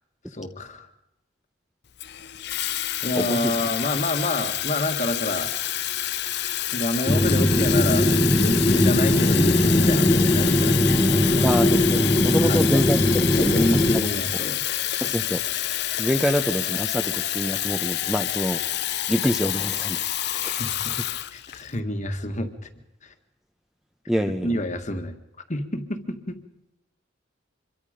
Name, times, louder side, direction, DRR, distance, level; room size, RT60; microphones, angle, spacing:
voice 1, 0.3-0.9 2.5-2.6 3.0-5.5 6.7-11.5 12.5-12.8 13.3-14.6 20.6-22.7 23.0-23.1 24.4-25.2 25.5-26.4, left 1 dB, 40° left, 7 dB, 1.7 m, -28 dB
Water tap faucet / Fill (with liquid), 2.0-21.7, left 13 dB, 55° left, 0.8 m, -28 dB
voice 2, 3.2-3.5 11.4-14.0 15.0-15.4 16.0-18.6 19.1-20.1 20.3-20.6 24.1-24.5, equal, ahead, 6 dB, 0.9 m, -26 dB
sound 1, 7.1-14.0, left 1 dB, 15° left, 1.3 m, -20 dB
sound 2, 8.1-15.1, right 1 dB, 80° right, 7.4 m, -41 dB
25.5 x 22.5 x 5.2 m, 0.88 s
head